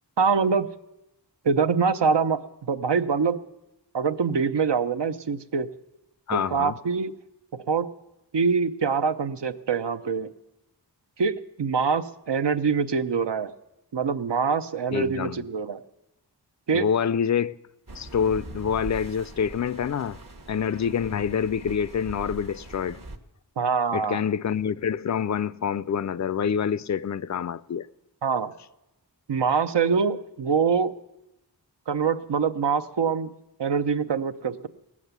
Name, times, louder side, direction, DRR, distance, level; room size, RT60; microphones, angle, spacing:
voice 1, 0.2-0.7 1.4-3.4 3.9-5.7 6.3-7.1 7.5-7.9 8.3-10.3 11.2-13.5 13.9-15.8 16.7-16.9 23.6-24.2 28.2-28.5 29.3-30.9 31.9-33.3 33.6-34.7, right 5 dB, 70° right, 0.7 m, -24 dB
voice 2, 6.3-6.7 14.9-15.4 16.7-17.6 18.0-20.2 20.5-23.0 23.9-27.9, left 7 dB, 45° left, 0.4 m, -26 dB
sound 1, 17.9-23.2, right 2 dB, 50° right, 1.2 m, -42 dB
18.0 x 7.4 x 8.1 m
wide cardioid pair, 50°, 43 cm